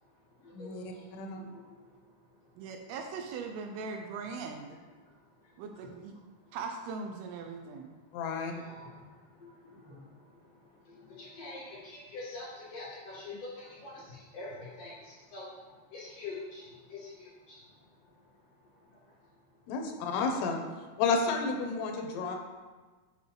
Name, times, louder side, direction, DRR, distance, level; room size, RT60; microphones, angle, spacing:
voice 1, 0.0-2.9 5.0-6.6 7.4-7.6 7.9-19.8 22.2-22.4, left 3 dB, 45° left, -9 dB, 2.7 m, -48 dB
voice 2, 0.5-0.8 1.1-1.4 8.1-8.5 19.7-20.6 21.0-22.4, left 4 dB, 90° left, 3 dB, 2.9 m, -31 dB
voice 3, 2.6-4.8 5.6-6.2 6.5-7.9, right 4 dB, 80° right, 4 dB, 2.3 m, -40 dB
8.4 x 5.1 x 3.3 m, 1.3 s
omnidirectional pair, 4.6 m